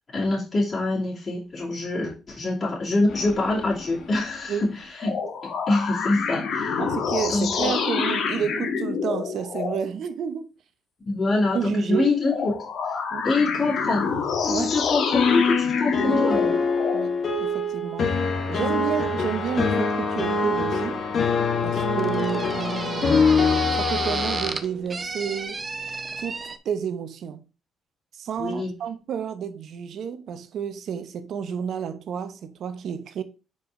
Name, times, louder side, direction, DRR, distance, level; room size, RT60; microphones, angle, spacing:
voice 1, 0.1-5.2 5.7-6.8 7.3-7.7 11.0-12.5 13.2-14.1 14.6-16.6 28.4-28.7, left 2 dB, 35° left, 2.6 m, -25 dB
sound 1, 3.1-4.7 5.0-9.8 12.2-17.1, left 5 dB, 70° left, 1.2 m, -28 dB
voice 2, 6.8-10.5 11.5-12.1 13.1-13.3 14.5-14.7 16.9-18.1 18.5-21.0 21.6-23.2 23.7-25.6 26.2-27.4 28.1-33.2, right 7 dB, 70° right, 0.8 m, -30 dB
sound 2, 14.4-24.5, left 4 dB, 55° left, 1.4 m, -24 dB
sound 3, 20.3-26.6, right 4 dB, 30° right, 0.7 m, -33 dB
4.8 x 4.5 x 4.8 m
cardioid pair, 90°, 0 cm